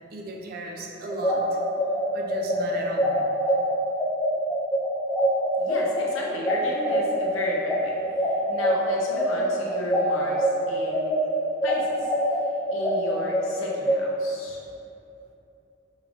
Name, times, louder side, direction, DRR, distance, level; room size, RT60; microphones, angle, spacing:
voice 1, 0.1-1.6 2.1-3.2, right 2 dB, 50° right, 0 dB, 0.5 m, -35 dB
sound 1, 1.1-10.5 10.9-14.0, equal, 5° left, 0.6 m, -24 dB
voice 2, 5.6-7.9 8.5-11.1 11.6-12.1 12.7-14.6, left 1 dB, 85° left, -4 dB, 0.8 m, -34 dB
5.3 x 3.5 x 2.5 m, 2.8 s
head